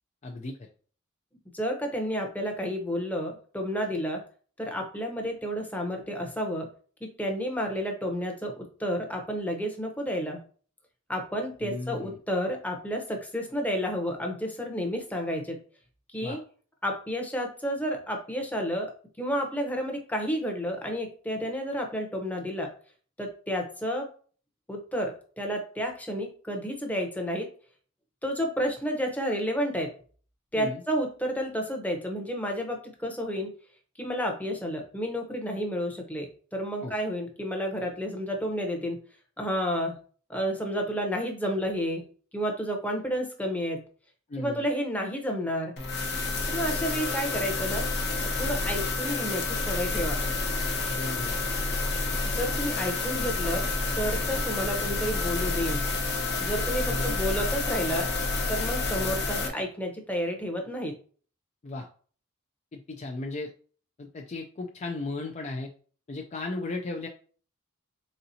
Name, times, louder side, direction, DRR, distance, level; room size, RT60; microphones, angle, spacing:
voice 1, 0.2-0.7 11.6-12.2 16.2-16.4 30.6-30.8 36.8-37.0 44.3-44.6 50.9-51.3 56.9-57.2 61.6-61.9 62.7-63.5 64.0-65.7 66.1-67.1, left 2 dB, 35° left, 2 dB, 0.4 m, -35 dB
voice 2, 1.5-4.2 4.6-6.7 7.2-10.4 11.1-15.6 16.1-16.4 16.8-18.9 19.2-22.7 23.2-24.1 24.7-27.5 28.2-29.9 30.5-33.5 34.0-36.3 36.5-39.0 39.4-40.0 40.3-42.0 42.3-43.8 44.4-45.7 46.5-47.9 48.4-50.2 52.2-53.7 53.9-55.8 56.4-58.1 58.5-60.9, equal, 5° left, 2 dB, 0.8 m, -31 dB
sound 1, 45.8-59.5, left 3 dB, 50° left, 0.8 m, -29 dB
4.2 x 3.8 x 2.7 m, 0.42 s
head